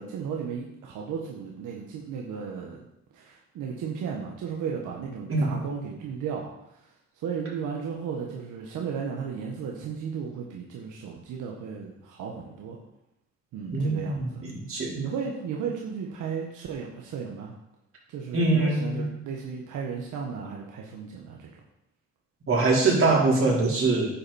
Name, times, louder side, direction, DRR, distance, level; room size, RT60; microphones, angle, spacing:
voice 1, 0.0-2.9 3.1-12.8 13.5-14.4 15.0-17.5 18.1-21.5, right 6 dB, 85° right, -1 dB, 1.5 m, -35 dB
voice 2, 13.7-15.0 18.3-19.0 22.5-24.1, right 3 dB, 45° right, -4 dB, 4.4 m, -23 dB
10.0 x 8.7 x 4.4 m, 0.84 s
cardioid pair, 90°, 30 cm